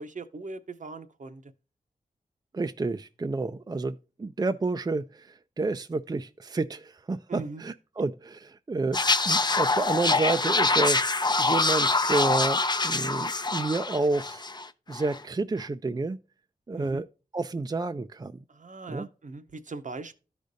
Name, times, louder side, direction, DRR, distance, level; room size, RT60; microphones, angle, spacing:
voice 1, 0.0-1.5 7.3-7.6 16.8-17.0 18.5-20.2, right 3 dB, 55° right, 0.8 m, -40 dB
voice 2, 2.5-9.0 9.2-11.0 11.4-14.4 14.9-16.2 16.7-17.1 17.3-18.3 18.9-19.1, right 3 dB, 25° right, 0.4 m, -30 dB
sound 1, 8.9-14.7 14.9-15.2, left 3 dB, 30° left, 0.5 m, -25 dB
13.0 x 5.0 x 2.6 m
cardioid pair, 40°, 16 cm